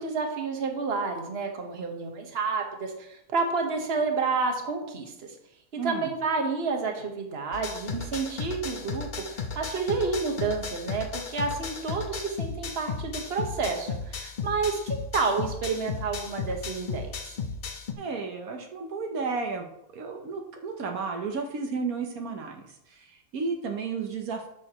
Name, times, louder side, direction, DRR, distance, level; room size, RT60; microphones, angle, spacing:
voice 1, 0.0-5.3 5.7-17.4, right 4 dB, 45° right, 3 dB, 1.4 m, -30 dB
voice 2, 5.7-6.1 18.0-19.7 19.9-24.5, right 4 dB, 80° right, 3 dB, 1.4 m, -33 dB
sound 1, 7.5-17.9, left 5 dB, 40° left, 0.8 m, -35 dB
11.5 x 6.5 x 3.0 m, 0.78 s
omnidirectional pair, 1.5 m